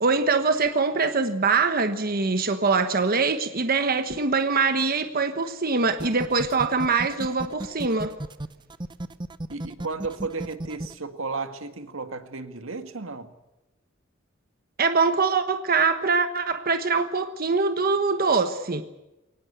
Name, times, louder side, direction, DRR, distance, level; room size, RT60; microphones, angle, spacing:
voice 1, 0.0-8.1 14.8-18.8, right 4 dB, 50° right, 1.2 m, -23 dB
sound 1, 5.9-10.9, right 1 dB, 25° right, 0.8 m, -34 dB
voice 2, 9.5-13.3, right 4 dB, 85° right, 1.9 m, -34 dB
23.0 x 18.5 x 8.2 m
head